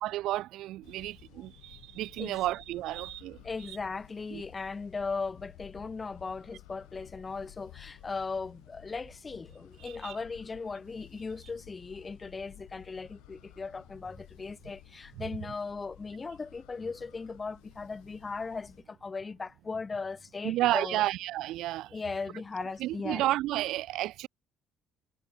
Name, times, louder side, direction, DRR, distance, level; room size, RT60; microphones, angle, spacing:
voice 1, 0.0-3.8 4.3-4.4 9.8-10.2 20.4-22.0 22.8-24.3, right 15 dB, 70° right, 0.8 m, -32 dB
sound 1, 0.8-18.8, left 21 dB, 85° left, 6.4 m, -55 dB
voice 2, 3.4-21.0 21.9-23.2, left 4 dB, 20° left, 2.8 m, -38 dB
cardioid pair, 130°, 0 cm